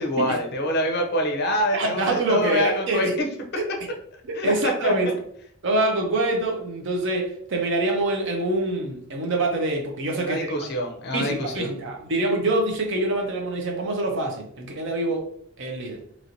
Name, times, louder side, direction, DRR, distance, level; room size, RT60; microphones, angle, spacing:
voice 1, 0.0-3.3 4.3-4.5 4.8-4.9 10.2-11.7, left 1 dB, 50° left, 3 dB, 0.5 m, -25 dB
voice 2, 1.7-3.2 3.6-3.7 4.3-5.1 5.6-10.4 11.1-15.3 15.6-16.0, right 2 dB, 55° right, 1 dB, 0.5 m, -25 dB
2.9 x 2.9 x 2.6 m, 0.67 s
head